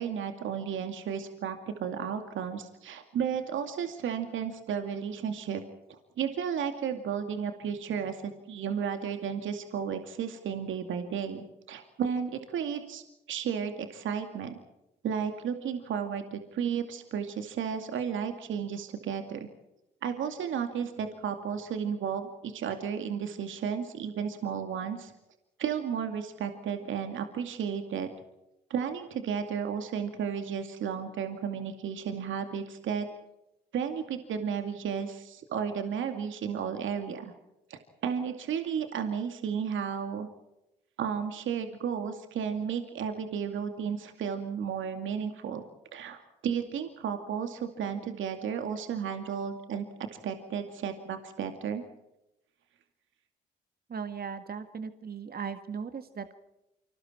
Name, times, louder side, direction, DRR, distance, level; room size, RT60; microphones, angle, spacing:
voice 1, 0.0-5.6 5.9-14.6 15.0-19.5 20.0-25.1 25.6-28.1 28.7-33.1 33.7-37.3 37.7-40.3 41.0-45.6 45.9-49.8 50.2-51.8, right 7 dB, 70° right, 6 dB, 2.4 m, -33 dB
voice 2, 53.9-56.4, right 6 dB, 45° right, 9 dB, 1.8 m, -38 dB
29.5 x 25.5 x 4.4 m, 0.90 s
hypercardioid pair, 45°, 21 cm